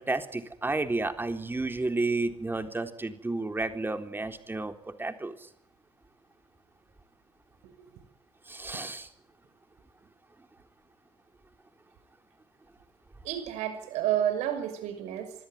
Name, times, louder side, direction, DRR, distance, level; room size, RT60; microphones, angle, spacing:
voice 1, 0.0-5.5 8.5-9.1, right 2 dB, 15° right, 7 dB, 3.7 m, -31 dB
voice 2, 13.2-15.3, right 11 dB, 65° right, 10 dB, 6.1 m, -30 dB
25.5 x 21.0 x 9.6 m, 0.71 s
figure-of-eight pair, 55°, 13 cm